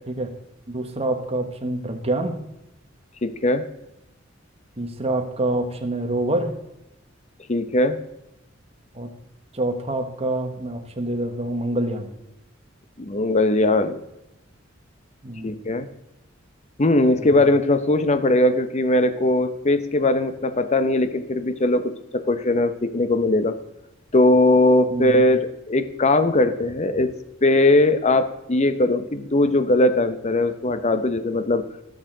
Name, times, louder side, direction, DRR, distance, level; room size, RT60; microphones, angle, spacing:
voice 1, 0.1-0.4 0.7-2.4 4.8-6.5 8.9-9.1 9.5-12.1 15.2-15.5 17.2-17.5 24.9-25.2, right 1 dB, 30° right, 5 dB, 1.2 m, -26 dB
voice 2, 3.2-3.7 7.5-8.0 13.0-14.0 15.4-15.9 16.8-23.6 24.1-27.1 27.4-31.7, left 2 dB, 35° left, 11 dB, 0.7 m, -20 dB
16.5 x 6.5 x 3.8 m, 0.90 s
head